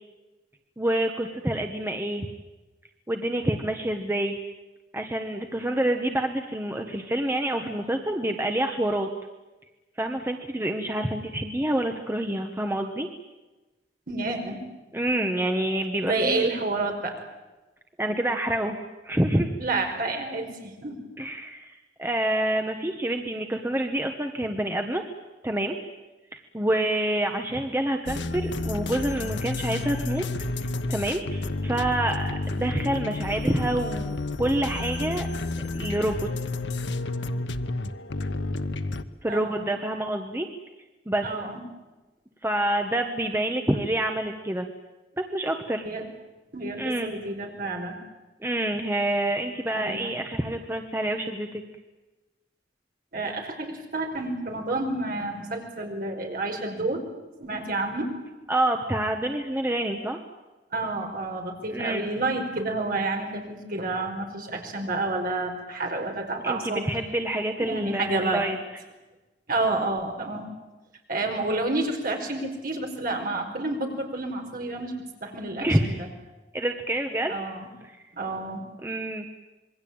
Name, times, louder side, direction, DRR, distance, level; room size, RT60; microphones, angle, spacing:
voice 1, 0.8-2.3 3.1-4.4 4.9-9.1 10.0-13.1 14.9-16.5 18.0-18.8 19.0-19.6 21.2-25.0 25.4-25.8 26.3-30.2 30.9-35.3 35.7-36.3 39.2-40.5 41.1-41.3 42.4-44.7 45.2-45.8 46.8-47.1 48.4-51.6 58.5-60.2 61.7-62.0 66.4-68.6 75.6-76.0 76.5-77.4 77.8-77.9 78.8-79.2, right 1 dB, 15° right, 4 dB, 1.4 m, -27 dB
voice 2, 14.1-14.6 16.0-17.2 19.6-21.0 39.3-39.7 41.2-41.6 45.8-46.1 46.5-48.0 49.7-50.1 53.1-57.0 57.4-58.2 60.7-66.9 67.6-68.5 69.5-70.5 71.1-76.1 77.3-77.7 78.1-78.6, right 2 dB, 55° right, 2 dB, 5.1 m, -29 dB
sound 1, 28.1-39.0, left 2 dB, 85° left, 1.1 m, -30 dB
26.5 x 22.0 x 8.9 m, 1.1 s
head